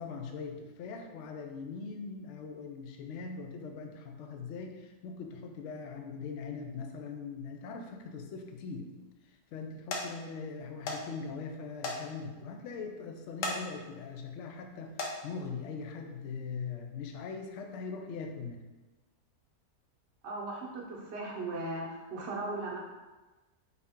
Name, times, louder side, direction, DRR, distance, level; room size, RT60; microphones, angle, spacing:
voice 1, 0.0-8.9 9.2-18.6, left 5 dB, 90° left, 3 dB, 0.6 m, -41 dB
sound 1, 8.5-8.9 9.4-9.6 9.9-10.1 10.9-11.0 11.3-11.4 11.8-12.0 12.4-12.5 13.3-13.6 14.1-14.3 14.8-15.1 16.1-16.2 16.7-16.8, left 2 dB, 65° left, 0.9 m, -35 dB
voice 2, 20.2-22.8, right 2 dB, 55° right, -4 dB, 0.9 m, -37 dB
4.2 x 2.7 x 3.5 m, 1.2 s
omnidirectional pair, 1.8 m